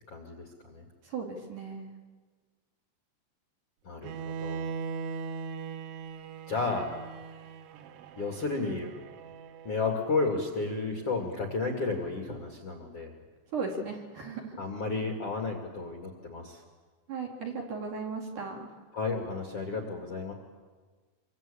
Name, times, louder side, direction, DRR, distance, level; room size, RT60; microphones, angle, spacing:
voice 1, 0.1-0.8 3.8-4.7 6.5-6.9 8.2-8.9 9.6-13.1 14.6-16.6 18.9-20.3, left 3 dB, 40° left, 2 dB, 2.3 m, -32 dB
voice 2, 1.0-1.9 13.5-14.6 17.1-18.7, right 4 dB, 50° right, 0 dB, 3.3 m, -36 dB
Bowed string instrument, 4.0-10.1, right 5 dB, 75° right, 3.4 m, -40 dB
26.0 x 23.5 x 8.6 m, 1.4 s
omnidirectional pair, 5.6 m